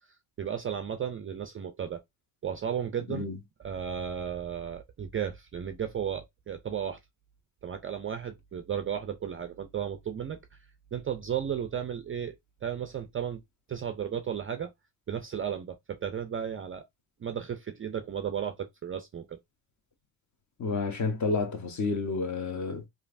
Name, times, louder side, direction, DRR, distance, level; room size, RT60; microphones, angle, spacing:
voice 1, 0.4-2.0 2.4-3.3 3.6-7.0 7.6-10.4 10.9-12.3 12.6-13.4 13.7-14.7 15.1-16.8 17.2-19.4, right 8 dB, 30° right, 0.4 m, -34 dB
voice 2, 20.6-22.9, left 4 dB, 35° left, 0.9 m, -30 dB
3.1 x 2.5 x 2.5 m
cardioid pair, 80°, 48 cm